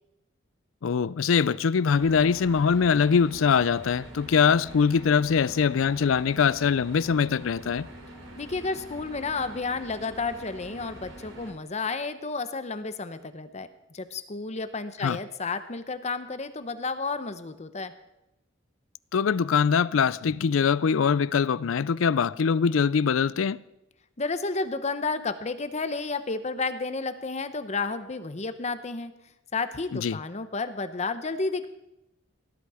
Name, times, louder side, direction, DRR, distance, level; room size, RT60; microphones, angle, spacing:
voice 1, 0.8-7.9 15.0-15.2 19.1-23.6 29.9-30.2, left 6 dB, 90° left, 0.4 m, -23 dB
sound 1, 1.9-11.5, right 1 dB, 85° right, 3.1 m, -45 dB
voice 2, 8.4-13.7 13.9-17.9 24.2-29.1 29.5-31.7, left 3 dB, 35° left, 0.8 m, -31 dB
18.0 x 11.5 x 4.9 m
head